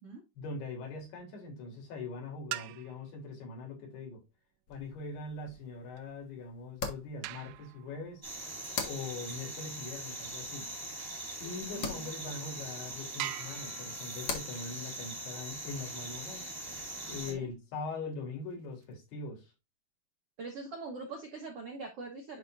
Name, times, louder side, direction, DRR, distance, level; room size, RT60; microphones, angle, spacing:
voice 1, 0.4-4.2 4.7-8.3 8.8-10.7 11.4-16.5 17.1-19.5, left 3 dB, 75° left, 5.1 m, -42 dB
sound 1, 1.2-1.4 2.3-3.2 4.9-11.3 12.0-12.1 12.5-12.6 13.2-15.8 18.0-18.9, right 17 dB, 85° right, 2.6 m, -46 dB
sound 2, 4.7-17.5, left 5 dB, 55° left, 1.8 m, -46 dB
sound 3, 8.2-17.3, right 1 dB, 10° right, 1.3 m, -42 dB
voice 2, 11.4-12.1 17.3-17.5 20.4-22.4, right 3 dB, 65° right, 1.4 m, -43 dB
11.0 x 4.4 x 2.5 m
omnidirectional pair, 4.6 m